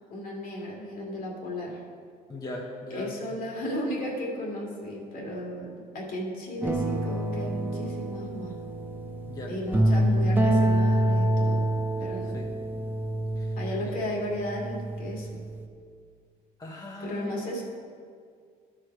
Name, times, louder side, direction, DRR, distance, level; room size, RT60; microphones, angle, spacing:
voice 1, 0.1-1.8 2.9-8.5 9.5-11.7 12.0-12.4 13.6-15.4 17.0-17.6, equal, 60° left, -2 dB, 2.2 m, -34 dB
voice 2, 2.3-3.2 9.3-10.0 12.3-12.5 13.4-13.5 13.8-14.0 16.6-17.4, left 1 dB, 20° left, -2 dB, 0.9 m, -39 dB
sound 1, 6.6-15.7, right 1 dB, 10° right, 0.6 m, -27 dB
13.0 x 4.9 x 4.6 m, 2.1 s
cardioid pair, 115°, 17 cm